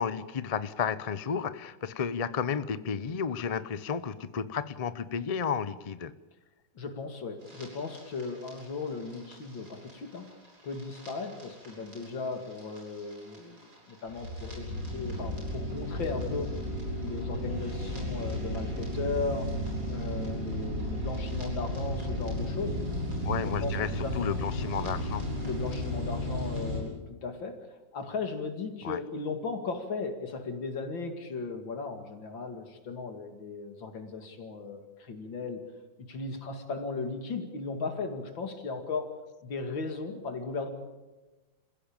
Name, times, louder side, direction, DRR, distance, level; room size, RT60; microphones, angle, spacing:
voice 1, 0.0-6.1 23.2-25.2 28.8-29.0, left 6 dB, 60° left, 14 dB, 0.4 m, -32 dB
voice 2, 6.7-10.3 10.6-16.5 17.0-19.5 19.9-22.8 23.2-24.2 25.4-27.0 27.2-35.6 36.0-39.1 39.4-40.7, left 4 dB, 90° left, 6 dB, 3.1 m, -36 dB
sound 1, 7.4-26.8, equal, 55° right, 7.1 m, -34 dB
28.0 x 15.5 x 8.8 m, 1.1 s
omnidirectional pair, 2.0 m